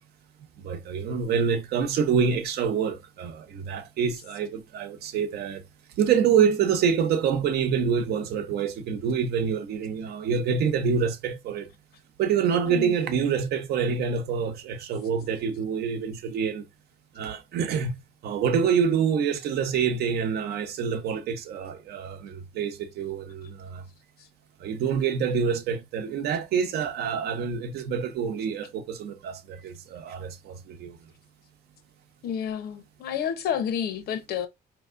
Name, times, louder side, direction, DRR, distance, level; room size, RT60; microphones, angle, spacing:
voice 1, 0.6-5.6 6.0-11.7 12.2-16.6 17.1-17.9 18.2-23.8 24.6-31.1, right 7 dB, 85° right, 0.8 m, -26 dB
voice 2, 32.2-34.5, left 8 dB, 80° left, 0.9 m, -30 dB
4.7 x 2.9 x 2.5 m
cardioid pair, 155°, 16 cm